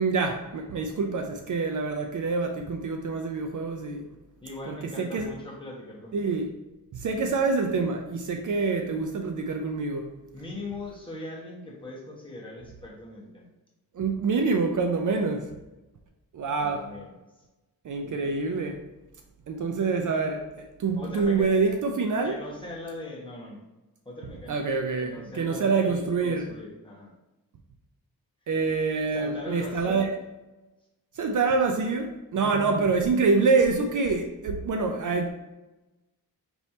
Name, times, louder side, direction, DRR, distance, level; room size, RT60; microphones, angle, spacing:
voice 1, 0.0-4.1 4.7-5.3 6.1-6.5 6.9-10.1 13.9-15.5 16.3-16.9 17.8-18.8 19.5-22.4 24.5-26.5 28.5-30.1 31.2-35.3, right 4 dB, 55° right, 0.5 m, -26 dB
voice 2, 4.4-6.4 10.3-13.5 16.6-17.1 18.0-18.2 21.0-21.8 22.2-23.6 24.0-24.6 25.0-27.1 29.1-30.0 32.3-32.9, left 2 dB, 15° left, 1.1 m, -40 dB
4.4 x 3.2 x 2.7 m
wide cardioid pair, 120°, 37 cm